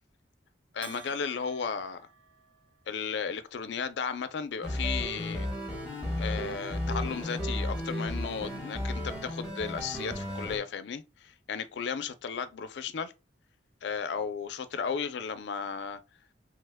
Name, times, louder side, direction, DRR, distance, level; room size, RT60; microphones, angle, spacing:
voice 1, 0.7-2.1 2.9-5.5 6.2-13.1 13.8-16.0, left 6 dB, 65° left, 0.4 m, -35 dB
Bell, 0.8-3.0, right 5 dB, 80° right, 0.6 m, -51 dB
sound 1, 4.6-10.6, left 1 dB, 5° right, 1.1 m, -34 dB
2.9 x 2.1 x 3.3 m
head